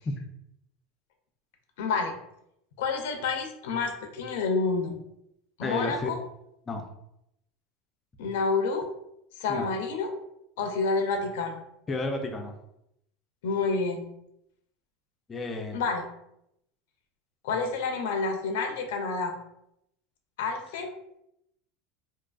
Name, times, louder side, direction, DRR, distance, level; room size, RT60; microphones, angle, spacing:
voice 1, 1.8-2.2 2.8-4.9 5.6-6.2 8.2-8.8 9.4-10.1 10.6-11.6 13.4-14.1 15.7-16.0 17.4-19.4 20.4-20.9, left 4 dB, 85° left, 4 dB, 0.4 m, -28 dB
voice 2, 5.6-6.1 6.7-6.8 9.5-9.6 11.9-12.5 15.3-15.8, left 2 dB, 20° left, 4 dB, 0.3 m, -31 dB
2.6 x 2.3 x 2.3 m, 0.79 s
supercardioid pair, 155°, 0 cm